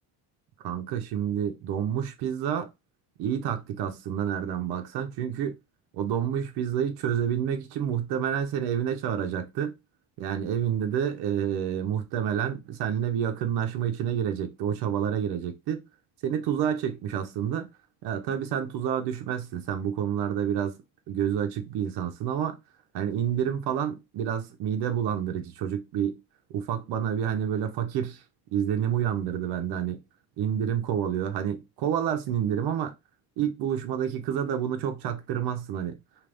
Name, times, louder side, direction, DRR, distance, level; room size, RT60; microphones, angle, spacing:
voice 1, 0.6-2.7 3.2-5.6 5.9-9.7 10.2-15.8 16.2-17.7 18.0-20.8 21.1-22.6 22.9-26.2 26.5-28.2 28.5-30.0 30.4-32.9 33.4-36.0, right 9 dB, 65° right, 0.8 m, -29 dB
3.4 x 2.7 x 2.6 m
cardioid pair, 125°, 41 cm